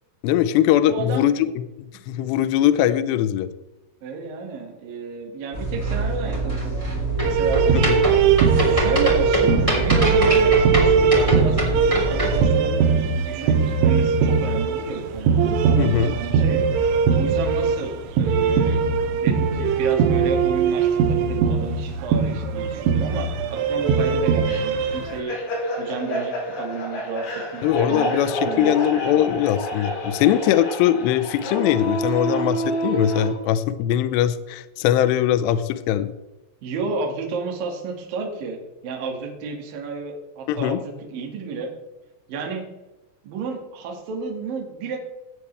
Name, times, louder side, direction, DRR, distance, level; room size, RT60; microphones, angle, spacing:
voice 1, 0.2-3.5 7.7-8.0 15.8-16.1 27.6-36.1 40.5-40.8, left 11 dB, 85° left, 11 dB, 2.4 m, -21 dB
voice 2, 0.9-1.3 4.0-7.8 8.3-9.5 9.8-18.8 19.1-25.4 25.8-28.2 28.4-28.7 30.4-30.5 36.6-41.7 42.3-42.6 43.2-45.0, right 4 dB, 55° right, 1 dB, 3.2 m, -31 dB
sound 1, 5.5-12.4, right 2 dB, 10° right, 2.4 m, -23 dB
sound 2, 7.2-25.1, right 6 dB, 85° right, 3.6 m, -20 dB
sound 3, 24.4-33.3, equal, 65° left, 6.7 m, -28 dB
17.0 x 8.5 x 3.3 m, 1.0 s
omnidirectional pair, 5.6 m